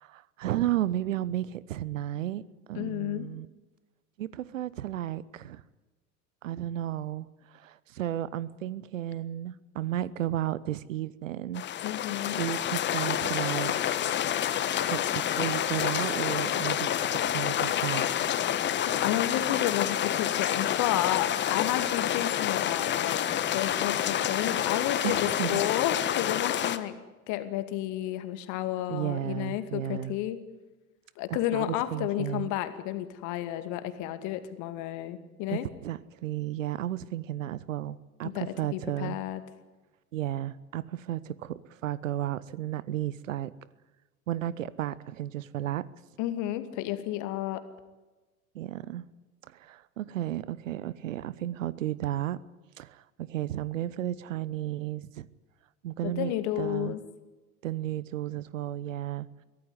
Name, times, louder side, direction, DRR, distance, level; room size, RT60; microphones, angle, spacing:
voice 1, 0.0-3.5 4.2-5.6 6.4-7.3 7.5-11.7 12.3-14.0 14.8-18.1 25.0-25.6 28.9-30.1 31.3-32.5 35.5-39.2 40.1-43.5 44.3-45.9 48.5-49.0 49.5-52.4 52.8-55.3 55.8-56.9 57.6-59.4, right 12 dB, 60° right, 20 dB, 1.0 m, -33 dB
voice 2, 2.8-3.3 11.8-12.4 18.9-23.2 23.5-26.9 27.3-30.4 31.2-35.7 38.2-38.5 38.7-39.4 46.2-47.6 56.0-57.0, left 13 dB, 40° left, 11 dB, 2.4 m, -31 dB
sound 1, 11.5-26.8, left 10 dB, 25° left, 1.4 m, -28 dB
24.0 x 17.0 x 9.8 m, 1.2 s
figure-of-eight pair, 85°, 45 cm